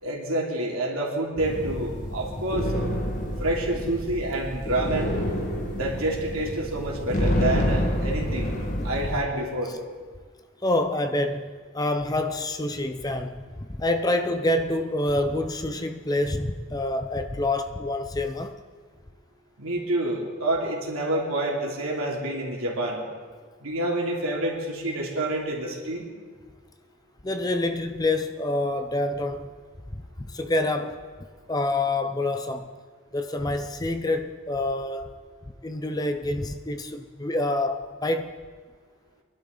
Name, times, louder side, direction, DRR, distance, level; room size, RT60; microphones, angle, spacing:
voice 1, 0.0-2.9 3.4-5.2 5.7-8.5 8.8-9.7 19.6-23.0 23.6-26.1, right 1 dB, 80° right, 2.9 m, -28 dB
sound 1, 1.4-9.2, equal, 35° left, 1.6 m, -28 dB
voice 2, 10.6-18.6 27.2-29.5 29.9-31.0 31.5-32.7 33.1-35.2 35.6-38.4, left 2 dB, 15° left, 0.5 m, -27 dB
22.0 x 12.0 x 3.9 m
head